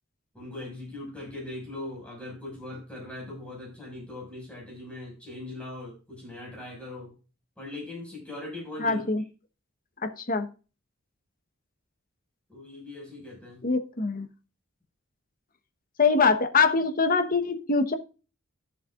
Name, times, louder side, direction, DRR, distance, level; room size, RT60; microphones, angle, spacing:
voice 1, 0.3-7.1 7.6-9.0 12.5-13.6, left 2 dB, 5° left, -3 dB, 5.9 m, -40 dB
voice 2, 8.8-9.2 10.0-10.5 13.6-14.3 16.0-17.9, left 4 dB, 45° left, 8 dB, 1.2 m, -24 dB
14.5 x 7.5 x 2.5 m, 0.34 s
head